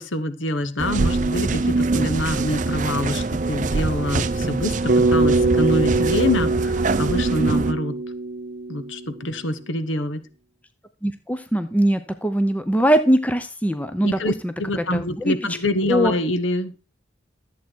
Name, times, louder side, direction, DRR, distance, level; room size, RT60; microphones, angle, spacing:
voice 1, 0.0-7.9 8.7-10.2 14.0-16.7, left 1 dB, 80° left, 12 dB, 1.1 m, -25 dB
sound 1, 0.8-7.7, right 3 dB, 40° right, 0.5 m, -23 dB
Bass guitar, 4.9-9.3, right 2 dB, 55° right, 0.9 m, -22 dB
voice 2, 11.0-15.4 15.9-16.1, equal, 5° left, 9 dB, 0.7 m, -21 dB
13.5 x 8.4 x 4.5 m, 0.34 s
head